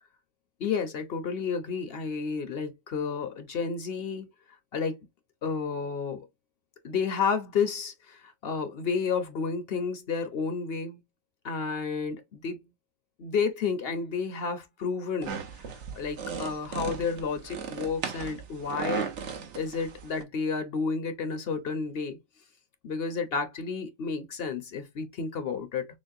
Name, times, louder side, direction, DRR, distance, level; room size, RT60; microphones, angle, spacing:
voice 1, 0.6-4.3 4.7-5.0 5.4-6.3 6.8-11.0 11.4-12.6 13.2-15.3 16.0-19.1 19.6-22.2 22.8-25.9, left 5 dB, 55° left, 0.9 m, -31 dB
sound 1, 15.2-20.2, right 6 dB, 65° right, 1.1 m, -36 dB
6.2 x 2.1 x 2.6 m
omnidirectional pair, 1.3 m